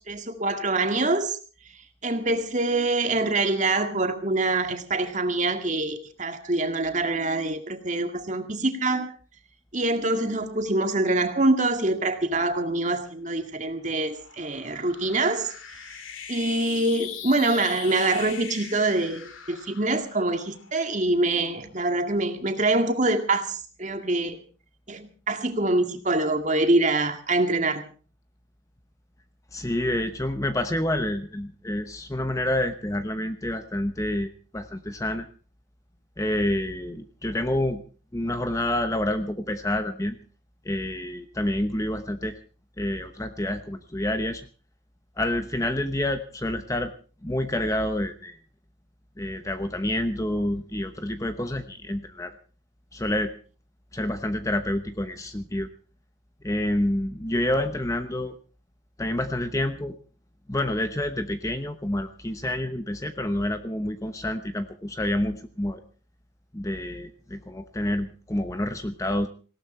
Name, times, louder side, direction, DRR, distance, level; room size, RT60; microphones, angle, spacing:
voice 1, 0.1-1.4 2.0-9.1 9.7-15.5 15.8-15.9 16.3-24.4 24.9-27.8, right 2 dB, 35° right, 6 dB, 2.0 m, -25 dB
sound 1, 13.1-21.7, left 8 dB, 85° left, 2.3 m, -41 dB
voice 2, 29.5-35.3 36.2-37.8 38.1-40.2 40.6-42.4 42.8-44.5 45.2-46.9 47.2-48.4 49.2-52.4 52.9-53.3 53.9-55.7 56.4-58.3 59.0-60.0 60.5-65.8 66.5-69.3, left 1 dB, 15° left, 9 dB, 0.9 m, -28 dB
19.0 x 17.5 x 4.3 m, 0.38 s
head